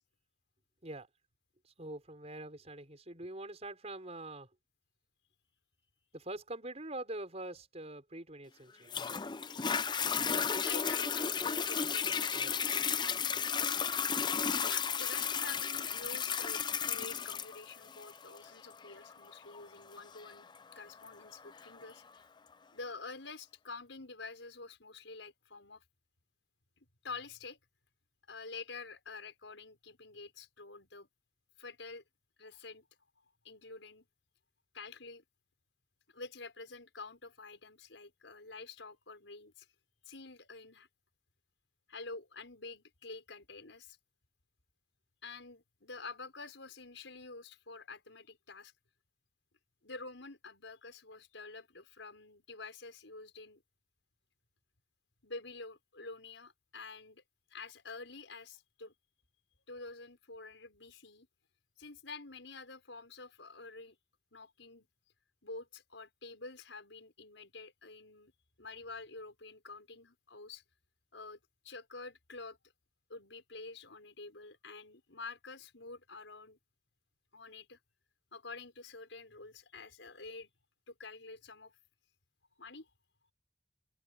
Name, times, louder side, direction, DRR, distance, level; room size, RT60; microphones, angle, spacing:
voice 1, 1.6-4.5 6.1-8.9 12.3-12.5 13.1-13.5, right 2 dB, 35° right, 5.9 m, -44 dB
Toilet flush, 8.9-21.9 22.5-22.6, left 7 dB, 25° left, 0.5 m, -34 dB
voice 2, 10.6-12.5 14.6-22.0 22.7-25.8 27.0-27.6 28.3-31.1 31.6-32.0 32.4-32.8 33.4-34.1 34.7-35.2 36.1-39.7 40.1-40.9 41.9-44.0 45.2-48.7 49.8-53.6 55.2-57.2 57.5-58.9 59.7-61.3 61.8-64.0 64.3-64.9 65.4-68.3 68.6-70.6 71.1-71.4 71.6-72.6 73.1-76.6 77.3-77.8 78.3-80.5 80.9-81.7 82.6-82.9, left 3 dB, 80° left, 5.7 m, -48 dB
open air
head